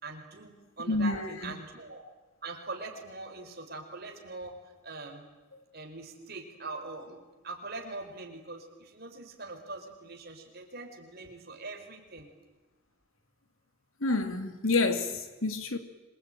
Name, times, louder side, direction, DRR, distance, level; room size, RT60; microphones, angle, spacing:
voice 1, 0.0-2.0 2.4-5.2 5.7-12.3, right 3 dB, 50° right, 4.6 m, -42 dB
voice 2, 0.9-1.5 14.0-15.8, left 3 dB, 80° left, 2.7 m, -28 dB
26.5 x 23.5 x 9.1 m
head